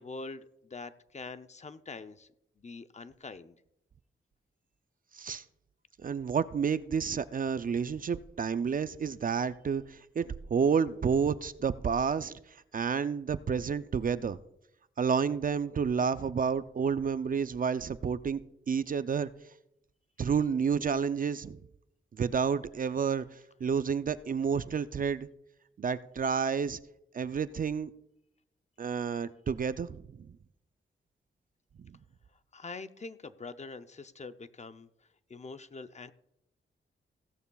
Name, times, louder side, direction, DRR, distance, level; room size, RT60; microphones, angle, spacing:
voice 1, 0.0-2.3 2.6-3.6 32.5-34.9 35.3-36.1, left 3 dB, 35° left, 11 dB, 0.6 m, -44 dB
voice 2, 6.0-12.4 12.7-14.4 15.0-18.4 18.7-19.3 20.2-21.6 22.1-25.3 25.8-26.8 27.1-27.9 28.8-30.3 31.8-32.0, right 6 dB, 45° right, 14 dB, 0.4 m, -30 dB
16.0 x 12.5 x 2.3 m, 0.81 s
wide cardioid pair, 95°, 21 cm